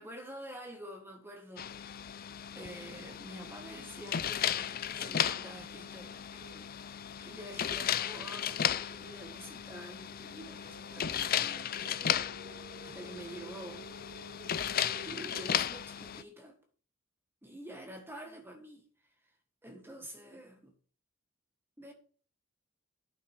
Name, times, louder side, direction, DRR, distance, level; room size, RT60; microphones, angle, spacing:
voice 1, 0.0-2.2 2.5-7.0 7.2-12.2 12.5-13.9 15.0-16.6 17.4-18.9 19.6-20.7 21.8-21.9, right 1 dB, 10° right, 1.6 m, -48 dB
sound 1, 1.6-16.2, left 9 dB, 45° left, 0.5 m, -35 dB
sound 2, 10.6-15.5, right 2 dB, 60° right, 2.0 m, -51 dB
9.3 x 6.0 x 6.6 m
head